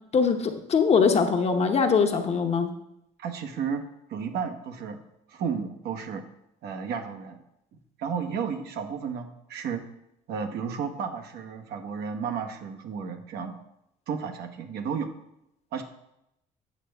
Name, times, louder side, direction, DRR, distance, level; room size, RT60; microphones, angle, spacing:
voice 1, 0.1-2.7, left 5 dB, 40° left, 5 dB, 0.9 m, -22 dB
voice 2, 3.2-3.8 4.1-5.0 5.3-6.2 6.6-7.4 8.0-9.8 10.3-13.6 14.1-15.1 15.7-15.8, right 6 dB, 70° right, 5 dB, 1.1 m, -32 dB
8.4 x 6.6 x 3.5 m, 0.82 s
cardioid pair, 110°, 17 cm